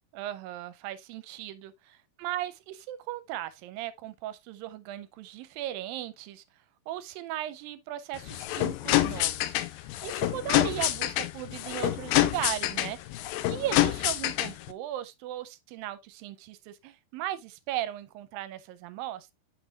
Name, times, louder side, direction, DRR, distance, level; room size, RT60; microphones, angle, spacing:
voice 1, 0.1-6.4 6.9-13.0 13.5-19.3, right 13 dB, 80° right, 2.3 m, -37 dB
sound 1, 8.1-14.7, left 16 dB, 80° left, 2.2 m, -27 dB
8.1 x 6.1 x 2.4 m
omnidirectional pair, 4.3 m